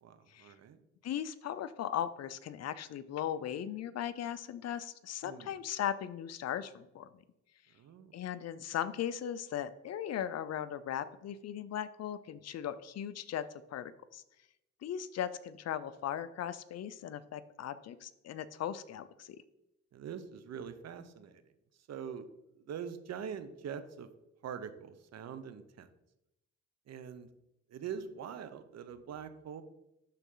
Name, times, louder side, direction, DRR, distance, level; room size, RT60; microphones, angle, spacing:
voice 1, 0.0-0.8 5.2-5.5 7.7-8.1 19.9-21.4 21.9-22.3 22.7-24.1 24.4-25.9 26.9-27.3 27.7-29.6, right 7 dB, 60° right, 11 dB, 0.8 m, -43 dB
voice 2, 1.0-7.1 8.1-14.2 14.8-19.4, left 10 dB, 55° left, 14 dB, 0.6 m, -38 dB
11.5 x 4.1 x 3.8 m, 0.87 s
cardioid pair, 90°, 30 cm